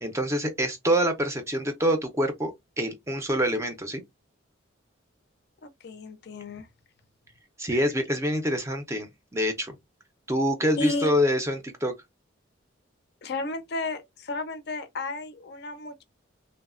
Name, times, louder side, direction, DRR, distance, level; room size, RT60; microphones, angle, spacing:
voice 1, 0.0-4.0 7.6-9.8 10.3-11.9, equal, 15° right, 0.5 m, -26 dB
voice 2, 5.6-6.7 10.8-11.1 13.2-16.0, left 3 dB, 50° left, 0.5 m, -33 dB
3.0 x 2.1 x 2.3 m
head